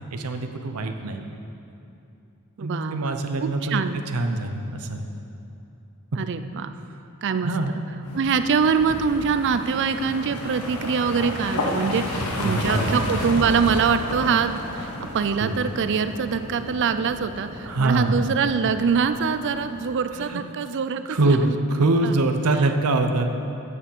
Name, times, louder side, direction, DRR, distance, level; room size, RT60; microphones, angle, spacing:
voice 1, 0.1-1.3 2.6-3.8 4.1-5.1 7.4-7.8 12.4-13.0 15.4-15.6 17.6-18.2 20.1-20.4 21.1-23.3, right 2 dB, 85° right, 6 dB, 0.8 m, -24 dB
voice 2, 2.6-4.0 6.2-6.7 7.2-7.5 8.1-14.9 15.1-21.6 22.0-22.1, right 6 dB, 55° right, 10 dB, 0.4 m, -24 dB
sound 1, 8.0-19.9, left 1 dB, 90° left, 1.2 m, -32 dB
8.5 x 6.8 x 7.3 m, 2.8 s
head